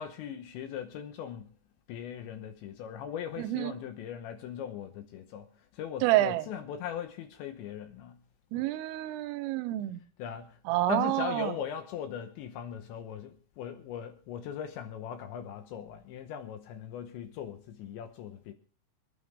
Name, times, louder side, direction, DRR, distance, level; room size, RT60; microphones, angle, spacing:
voice 1, 0.0-1.5 1.9-5.5 5.7-8.2 10.2-10.6 10.9-18.5, left 8 dB, 75° left, 3.1 m, -39 dB
voice 2, 3.4-3.7 6.0-6.5 8.5-10.0 10.7-11.5, right 16 dB, 90° right, 3.4 m, -28 dB
27.0 x 9.3 x 3.4 m
omnidirectional pair, 5.6 m